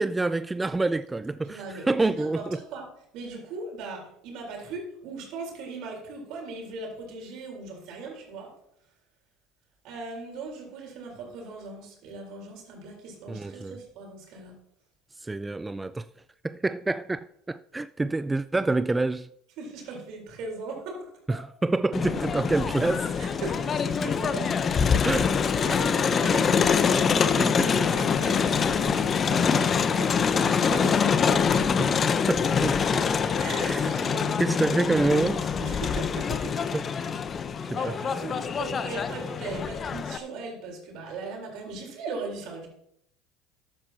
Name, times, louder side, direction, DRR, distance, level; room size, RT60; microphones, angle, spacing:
voice 1, 0.0-2.6 13.3-13.8 15.2-16.1 16.4-17.2 17.5-19.3 21.3-23.1 25.0-25.3 27.3-27.7 31.8-32.0 32.3-33.0 33.6-33.9 34.4-35.5 36.7-36.9 37.7-38.3, right 2 dB, 15° right, 0.4 m, -27 dB
voice 2, 1.5-2.8 3.1-8.5 9.8-14.5 19.6-21.1 23.2-24.6 25.6-26.6 27.4-31.9 33.1-34.9 35.5-36.6 37.0-37.2 37.6-42.7, right 3 dB, 65° right, 4.0 m, -39 dB
Crowd, 21.9-40.2, left 6 dB, 35° left, 0.8 m, -25 dB
13.5 x 11.0 x 2.9 m
hypercardioid pair, 75°, 0 cm